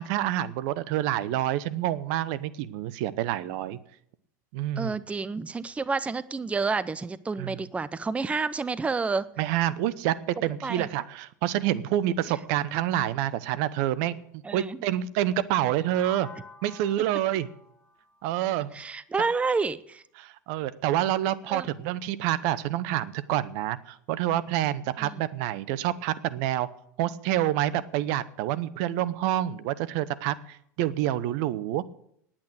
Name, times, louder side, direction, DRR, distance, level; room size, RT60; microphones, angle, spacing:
voice 1, 0.0-3.8 4.5-5.0 7.4-7.6 9.4-16.3 16.6-17.5 18.2-18.7 20.2-26.7 27.0-31.8, right 13 dB, 60° right, 17 dB, 0.8 m, -28 dB
voice 2, 4.8-9.3 10.6-10.9 14.4-14.8 18.7-20.0 21.5-21.7 25.0-25.2, right 4 dB, 15° right, 17 dB, 0.5 m, -29 dB
sound 1, 15.9-19.8, left 3 dB, 10° left, 3.2 m, -50 dB
10.5 x 8.8 x 7.9 m, 0.70 s
hypercardioid pair, 90°, 10 cm